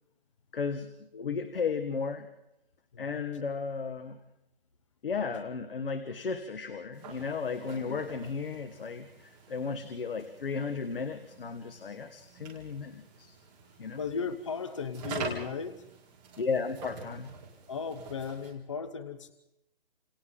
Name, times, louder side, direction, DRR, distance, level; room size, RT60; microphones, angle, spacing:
voice 1, 0.5-0.9 1.2-2.3 3.0-4.2 5.0-13.3 13.8-14.0 16.4-17.3, left 5 dB, 60° left, 9 dB, 1.7 m, -34 dB
voice 2, 2.9-3.2 5.3-5.4 14.0-15.8 17.7-19.3, left 5 dB, 30° left, 12 dB, 0.8 m, -36 dB
sound 1, 6.9-18.5, right 4 dB, 10° right, 2.8 m, -46 dB
30.0 x 27.5 x 3.9 m, 0.89 s
hypercardioid pair, 175°, 31 cm